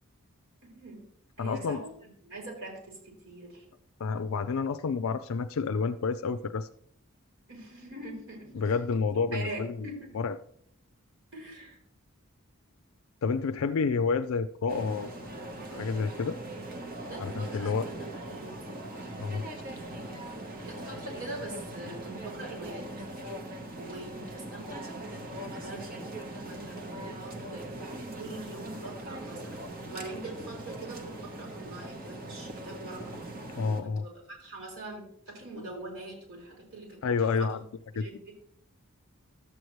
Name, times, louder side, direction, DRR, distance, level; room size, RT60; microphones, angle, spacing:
voice 1, 0.6-1.0 1.4-3.6 7.5-8.7 9.3-10.1 11.3-11.8 17.0-18.9 19.6-20.1 20.4-22.9 23.7-26.0 26.4-27.7 28.2-29.6 29.9-33.2 33.8-34.1 34.4-37.6 37.9-38.3, right 2 dB, 65° right, -1 dB, 4.5 m, -43 dB
voice 2, 1.4-1.8 4.0-6.7 8.5-10.3 13.2-15.1 15.7-16.4 17.2-17.9 19.2-19.5 33.6-34.0 37.0-37.6 38.0-38.1, left 5 dB, 70° left, 9 dB, 0.4 m, -29 dB
sound 1, 14.7-33.8, right 1 dB, 40° right, 1.1 m, -41 dB
12.0 x 7.9 x 3.1 m, 0.66 s
head